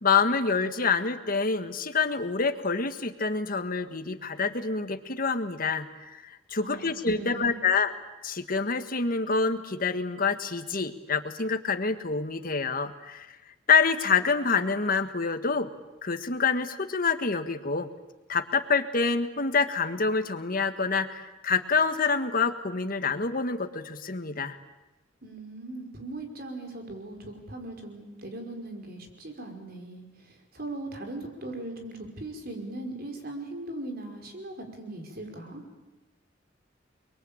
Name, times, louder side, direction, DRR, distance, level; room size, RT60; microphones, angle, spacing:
voice 1, 0.0-7.9 8.2-13.3 13.7-15.7 16.0-17.9 18.3-24.6, left 4 dB, 50° left, 9 dB, 1.7 m, -27 dB
voice 2, 6.6-7.6 25.2-35.6, right 2 dB, 55° right, 4 dB, 5.4 m, -39 dB
29.5 x 22.0 x 8.9 m, 1.1 s
head